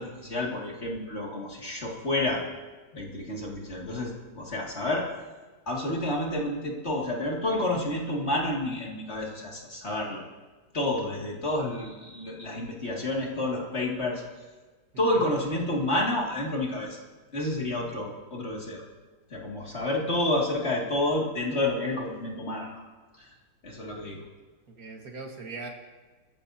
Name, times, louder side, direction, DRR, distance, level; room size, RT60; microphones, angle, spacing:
voice 1, 0.0-2.4 2.9-5.0 5.7-10.2 10.7-14.2 15.0-17.0 17.3-18.8 19.3-22.8 23.2-23.3 23.6-24.2, left 1 dB, 40° left, -2 dB, 2.6 m, -29 dB
voice 2, 14.9-15.3 19.7-19.8 24.8-25.7, right 3 dB, 55° right, 1 dB, 2.0 m, -41 dB
24.5 x 14.0 x 2.8 m, 1.3 s
omnidirectional pair, 1.8 m